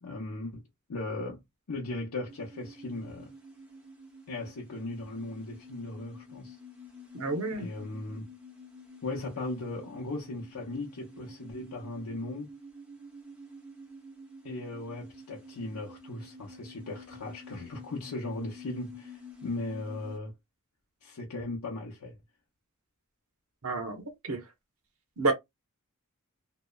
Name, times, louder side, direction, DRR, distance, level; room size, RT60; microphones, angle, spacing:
voice 1, 0.0-3.3 4.3-6.6 7.6-8.3 9.0-12.5 14.4-20.4 21.0-22.2, left 2 dB, 85° left, 0.6 m, -38 dB
sound 1, 2.3-20.2, left 1 dB, 5° right, 0.6 m, -50 dB
voice 2, 7.1-7.7 23.6-24.4 25.2-25.3, right 3 dB, 70° right, 0.8 m, -30 dB
2.8 x 2.0 x 2.2 m
head